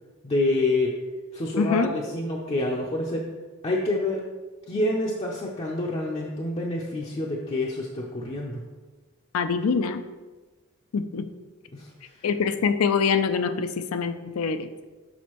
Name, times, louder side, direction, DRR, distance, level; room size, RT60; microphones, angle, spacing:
voice 1, 0.2-0.9 1.3-3.2 3.6-4.2 4.7-8.6 11.7-11.9 12.2-12.3, left 2 dB, 30° left, -3 dB, 0.5 m, -27 dB
voice 2, 1.6-1.9 9.3-10.0 10.9-11.3 12.2-14.7, left 5 dB, 80° left, 10 dB, 0.4 m, -24 dB
6.2 x 5.1 x 3.0 m, 1.3 s
head